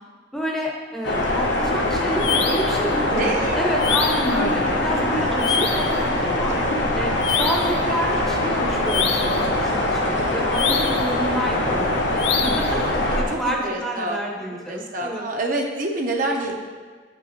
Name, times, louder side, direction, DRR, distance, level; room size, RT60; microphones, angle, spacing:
voice 1, 0.3-6.6 6.9-12.7 13.2-15.3, equal, ahead, -2 dB, 0.7 m, -29 dB
sound 1, 1.0-13.2, left 1 dB, 85° left, 0.9 m, -22 dB
sound 2, 2.2-2.8 3.8-4.4 5.4-5.9 7.2-7.8 8.9-9.4 10.5-11.1 12.2-12.7, left 7 dB, 70° left, 0.4 m, -25 dB
voice 2, 3.0-3.7 12.8-12.9 13.3-14.2 14.5-16.5, right 2 dB, 45° right, 1 dB, 0.6 m, -27 dB
8.6 x 5.2 x 2.9 m, 1.5 s
head